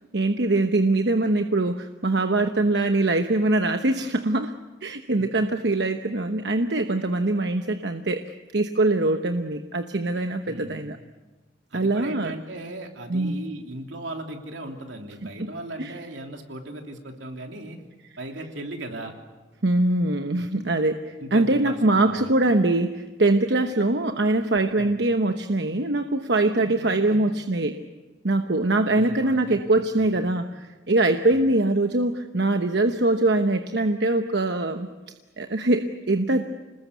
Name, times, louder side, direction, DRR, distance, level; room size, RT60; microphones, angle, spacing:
voice 1, 0.1-4.5 4.8-8.2 8.5-11.0 11.7-12.3 13.1-13.4 15.4-15.5 15.8-15.9 19.6-27.8 28.2-34.9 35.4-36.4, right 2 dB, 70° right, 7 dB, 1.0 m, -23 dB
voice 2, 10.5-10.9 11.7-17.8 18.2-19.2 21.2-22.3 24.8-25.0 26.6-27.4 28.9-29.6 30.0-30.3 31.3-31.5, right 1 dB, 85° right, 3 dB, 3.3 m, -37 dB
26.5 x 20.5 x 8.2 m, 1.2 s
head